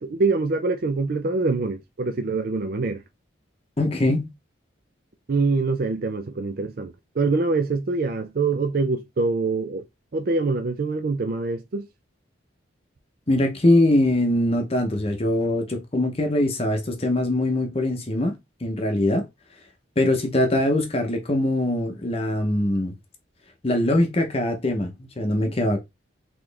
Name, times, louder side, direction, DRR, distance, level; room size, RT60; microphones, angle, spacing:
voice 1, 0.0-3.0 5.3-9.8 10.1-11.9, right 3 dB, 50° right, 0.4 m, -24 dB
voice 2, 3.8-4.3 13.3-18.3 18.6-19.2 20.0-22.9 23.6-25.8, left 1 dB, 30° left, 0.7 m, -22 dB
4.1 x 3.0 x 3.3 m
head